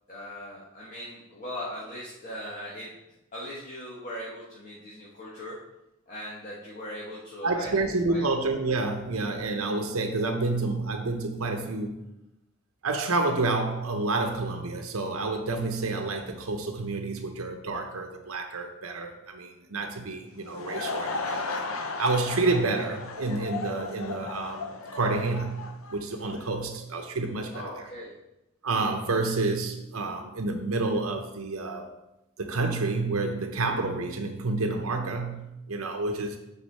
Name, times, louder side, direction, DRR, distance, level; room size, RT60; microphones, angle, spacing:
voice 1, 0.1-2.9 3.3-5.6 6.1-8.2 27.5-28.2, left 1 dB, 40° left, 1.5 m, -39 dB
voice 2, 7.4-12.0 12.8-21.6 22.0-27.8 28.6-31.9 32.4-36.4, right 3 dB, 80° right, 0.8 m, -29 dB
Laughter / Crowd, 20.2-26.6, left 4 dB, 70° left, 0.7 m, -35 dB
8.7 x 4.2 x 4.2 m
head